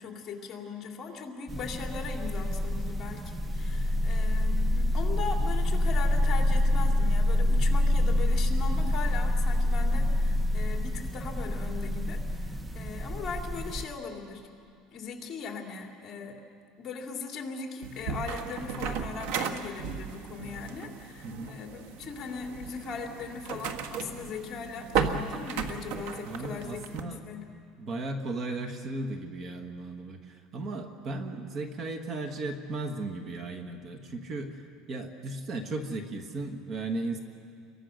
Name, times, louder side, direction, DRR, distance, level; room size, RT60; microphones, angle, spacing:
voice 1, 0.0-14.4 14.9-16.4 16.8-27.4, left 5 dB, 25° left, 1 dB, 2.9 m, -39 dB
sound 1, 1.5-13.8, left 1 dB, 10° right, 0.8 m, -26 dB
sound 2, 17.8-27.0, right 6 dB, 65° right, 1.6 m, -35 dB
voice 2, 21.2-21.6 26.2-27.4 27.8-34.6 34.9-37.2, right 2 dB, 30° right, 5 dB, 1.5 m, -36 dB
29.5 x 23.0 x 6.5 m, 2.4 s
cardioid pair, 165°, 0 cm